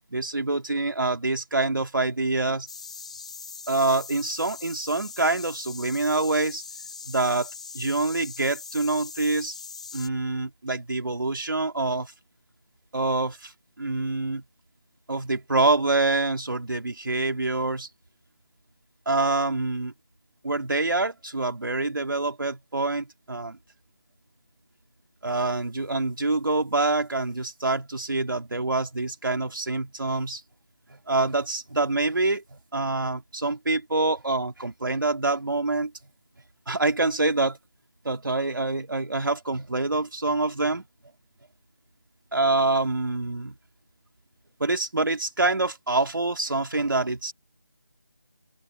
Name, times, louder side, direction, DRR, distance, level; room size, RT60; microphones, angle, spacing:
voice 1, 0.1-2.7 3.7-6.6 7.1-9.5 9.9-12.1 12.9-13.5 13.8-14.4 15.1-17.9 19.1-19.9 20.4-23.6 25.2-30.4 30.9-35.9 36.7-37.6 38.0-40.8 42.3-43.5 44.6-47.3, right 2 dB, 80° right, 2.9 m, -26 dB
sound 1, 2.7-10.1, left 5 dB, 20° left, 1.8 m, -41 dB
open air
figure-of-eight pair, 180°, 11 cm